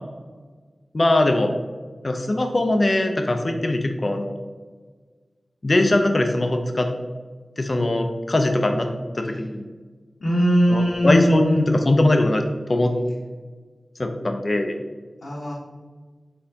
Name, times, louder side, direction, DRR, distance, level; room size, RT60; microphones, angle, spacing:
voice 1, 0.9-1.5 2.0-4.3 5.6-6.9 7.6-8.9 9.2-9.6 10.7-12.9 14.0-14.8, left 1 dB, 45° left, 4 dB, 0.4 m, -21 dB
voice 2, 10.2-11.6 15.2-15.5, equal, 80° left, -7 dB, 0.9 m, -20 dB
4.1 x 3.7 x 2.7 m, 1.4 s
cardioid pair, 40°, 0 cm